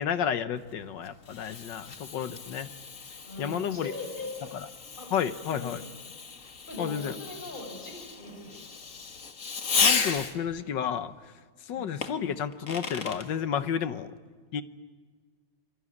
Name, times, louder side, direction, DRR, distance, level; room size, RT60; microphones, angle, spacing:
voice 1, 0.0-2.7 3.4-3.9 4.5-4.7 5.1-5.8 6.8-7.1 9.8-11.1 11.7-14.1 14.5-14.6, left 8 dB, 70° left, 12 dB, 1.6 m, -31 dB
Fireworks, 0.6-10.6 12.0-13.3, left 5 dB, 45° left, 1.8 m, -34 dB
voice 2, 3.3-4.4 5.0-5.1 5.5-5.9 6.4-8.6 11.7-11.9, left 2 dB, 25° left, 3 dB, 6.0 m, -41 dB
26.5 x 22.0 x 9.8 m, 1.5 s
omnidirectional pair, 2.1 m